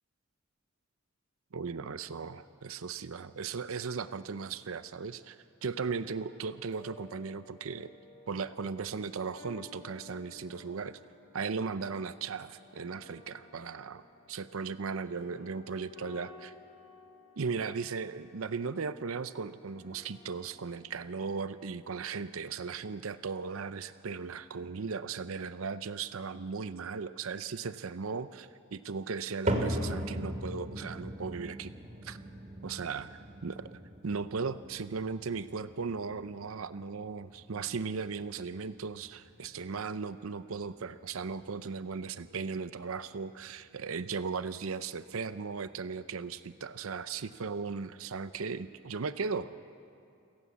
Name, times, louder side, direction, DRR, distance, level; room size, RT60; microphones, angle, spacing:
voice 1, 1.5-7.9 8.3-11.0 11.3-16.5 17.4-31.7 32.0-32.2 32.6-49.6, right 5 dB, 80° right, 13 dB, 0.6 m, -37 dB
sound 1, 6.2-21.4, left 3 dB, 70° left, 6.3 m, -56 dB
sound 2, 29.5-45.8 46.1-46.6 47.2-47.3 48.1-48.2, right 1 dB, 40° right, 2.3 m, -40 dB
28.5 x 18.0 x 7.2 m, 2.5 s
head